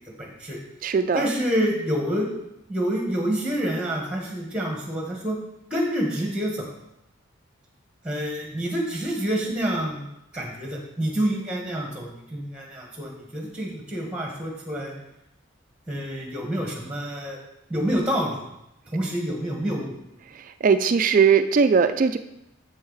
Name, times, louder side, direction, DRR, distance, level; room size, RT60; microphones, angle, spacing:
voice 1, 0.2-0.6 1.1-2.3 2.7-5.4 5.7-6.7 8.0-10.1 10.3-14.9 15.9-17.4 17.7-18.4 18.9-19.9, equal, 5° right, 0 dB, 1.4 m, -27 dB
voice 2, 0.8-1.3 20.3-22.2, right 6 dB, 40° right, 10 dB, 0.3 m, -20 dB
7.8 x 7.1 x 4.0 m, 0.85 s
head